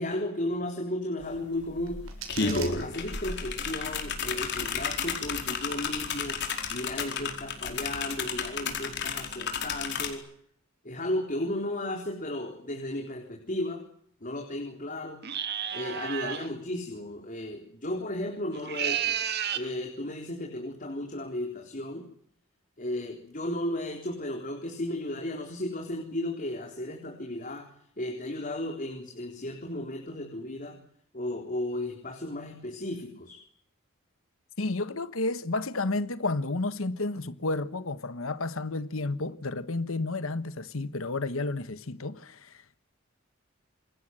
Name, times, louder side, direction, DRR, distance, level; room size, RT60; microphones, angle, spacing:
voice 1, 0.0-2.1 2.4-6.4 6.7-10.2 10.8-13.8 14.2-15.2 15.7-19.1 19.6-22.0 22.8-27.7 28.0-30.8 31.1-33.4, left 1 dB, 40° left, 4.0 m, -34 dB
sound 1, 1.2-1.3 1.6-10.1, left 5 dB, 55° left, 4.8 m, -32 dB
sound 2, 1.6-3.6, right 6 dB, 75° right, 7.1 m, -43 dB
sound 3, 15.2-16.5 18.5-19.7, right 9 dB, 50° right, 2.0 m, -31 dB
voice 2, 34.6-42.8, left 2 dB, 75° left, 1.3 m, -31 dB
27.5 x 22.5 x 7.8 m
head